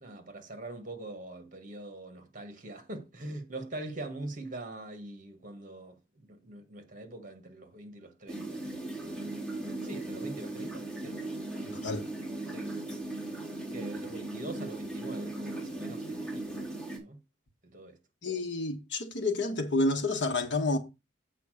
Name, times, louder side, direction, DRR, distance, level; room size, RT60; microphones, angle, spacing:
voice 1, 0.0-8.6 8.9-9.3 9.8-11.2 12.5-12.7 13.7-16.7 17.0-17.2 17.7-18.0, right 2 dB, 40° right, 1.6 m, -43 dB
sound 1, 8.3-17.0, right 2 dB, 5° left, 2.8 m, -38 dB
voice 2, 11.6-12.1 18.2-20.8, left 2 dB, 65° left, 1.5 m, -29 dB
8.5 x 4.2 x 6.5 m
head